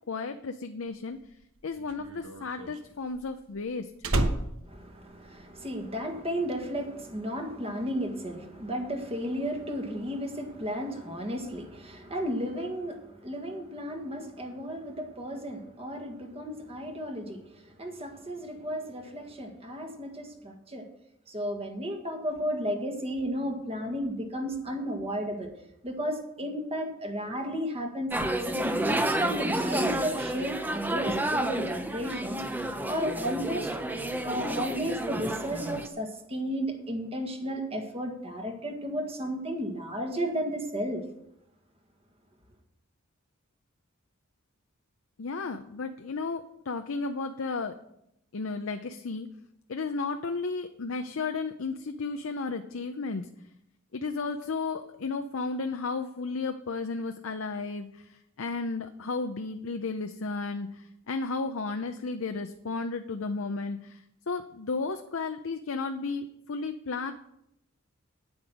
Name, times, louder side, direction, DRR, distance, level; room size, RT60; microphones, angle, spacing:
voice 1, 0.1-1.2 1.6-3.9 45.2-47.7 48.3-49.3 49.7-53.3 53.9-67.1, left 4 dB, 65° left, 7 dB, 0.6 m, -33 dB
Slam, 1.1-5.8 6.1-6.5, right 1 dB, 70° right, 1.1 m, -32 dB
voice 2, 4.7-20.9 21.3-25.5 25.8-33.7 34.2-41.0, equal, 30° right, 3 dB, 1.7 m, -33 dB
sound 1, 28.1-35.9, right 1 dB, 10° right, 0.7 m, -30 dB
9.6 x 8.8 x 6.2 m, 0.79 s
head